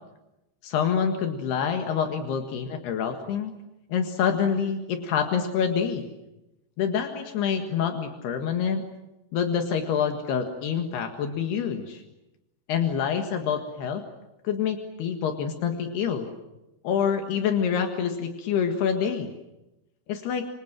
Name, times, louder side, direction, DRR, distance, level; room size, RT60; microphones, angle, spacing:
voice 1, 0.6-3.5 3.9-6.1 6.8-8.8 9.3-12.0 12.7-14.0 14.4-16.3 16.8-19.3 20.1-20.5, left 7 dB, 75° left, 5 dB, 3.8 m, -26 dB
26.0 x 26.0 x 7.5 m, 0.94 s
omnidirectional pair, 4.7 m